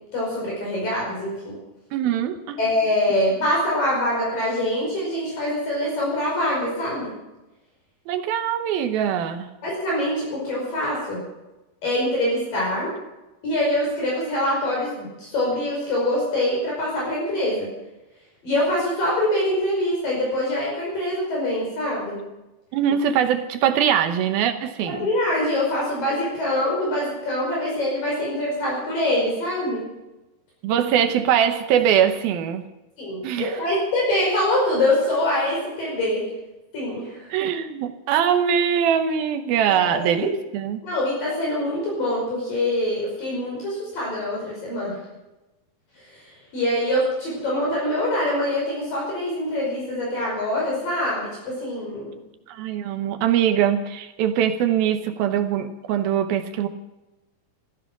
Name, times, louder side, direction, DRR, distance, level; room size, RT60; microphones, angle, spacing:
voice 1, 0.1-1.5 2.6-7.1 9.6-11.2 11.8-12.9 13.4-17.7 18.4-22.2 24.8-29.8 33.0-36.3 36.7-37.2 39.9-40.1 40.8-45.0 46.1-46.2 46.5-52.2, left 1 dB, 55° left, -4 dB, 6.9 m, -24 dB
voice 2, 1.9-2.6 8.1-9.5 22.7-25.1 30.6-32.7 33.2-33.6 37.3-40.8 52.5-56.7, right 9 dB, 75° right, 8 dB, 2.6 m, -22 dB
16.0 x 14.5 x 6.1 m, 1.0 s
omnidirectional pair, 4.7 m